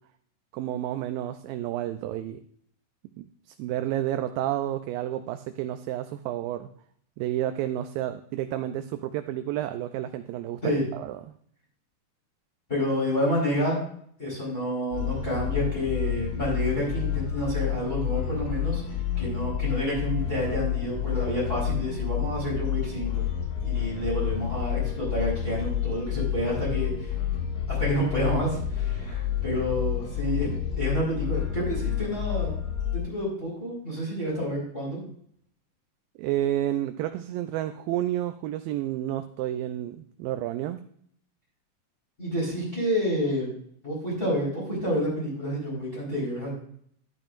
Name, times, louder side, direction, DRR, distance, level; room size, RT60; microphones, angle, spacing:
voice 1, 0.5-2.4 3.2-6.7 7.2-11.4 36.2-40.8, right 12 dB, 85° right, 8 dB, 2.3 m, -30 dB
voice 2, 12.7-13.8 14.2-23.2 23.6-27.1 27.7-30.5 30.8-32.5 32.9-35.0 42.2-43.5 43.8-46.5, equal, 20° left, -5 dB, 4.5 m, -29 dB
sound 1, 14.9-33.0, left 10 dB, 80° left, 3.3 m, -29 dB
12.5 x 10.5 x 2.5 m, 0.63 s
omnidirectional pair, 4.0 m